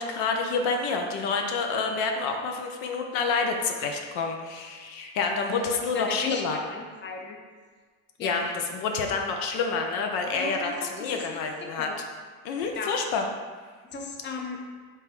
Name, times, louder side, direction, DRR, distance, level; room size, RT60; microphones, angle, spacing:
voice 1, 0.0-6.6 8.2-11.9 12.4-13.3, left 4 dB, 85° left, 3 dB, 0.5 m, -28 dB
voice 2, 5.6-7.4 8.2-8.5 10.3-11.3 11.6-12.0 12.8-12.9 13.9-14.6, left 4 dB, 30° left, 2 dB, 0.5 m, -36 dB
3.4 x 2.9 x 3.0 m, 1.5 s
supercardioid pair, 70°, 39 cm